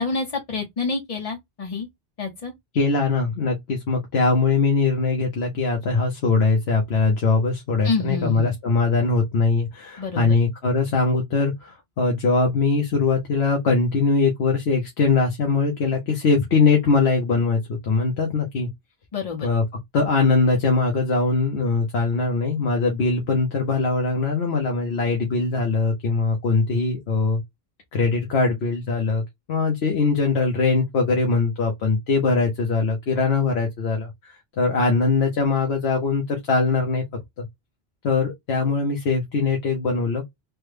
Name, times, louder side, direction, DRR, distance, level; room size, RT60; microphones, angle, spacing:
voice 1, 0.0-1.9 2.2-2.5 7.8-8.5 10.0-10.4 19.1-19.5, left 4 dB, 40° left, 0.6 m, -27 dB
voice 2, 2.7-18.7 19.4-27.4 27.9-29.2 29.5-37.0 37.4-37.5 38.0-40.2, left 4 dB, 85° left, 1.1 m, -21 dB
3.4 x 2.1 x 3.2 m
omnidirectional pair, 1.0 m